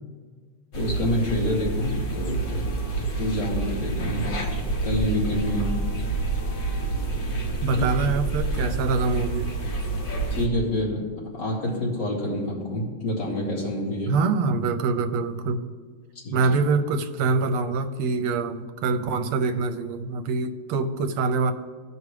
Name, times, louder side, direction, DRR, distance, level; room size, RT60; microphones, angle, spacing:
sound 1, 0.7-10.5, right 2 dB, 70° left, 0.5 m, -28 dB
voice 1, 0.7-2.8 3.2-4.3 4.8-5.7 7.7-7.8 10.3-11.1 11.3-14.1 16.2-16.4 19.0-19.1, left 1 dB, 50° left, -6 dB, 3.3 m, -27 dB
voice 2, 7.6-9.5 14.1-15.7 16.3-21.5, right 4 dB, 80° right, 9 dB, 1.5 m, -25 dB
16.0 x 5.3 x 3.2 m, 1.5 s
omnidirectional pair, 2.4 m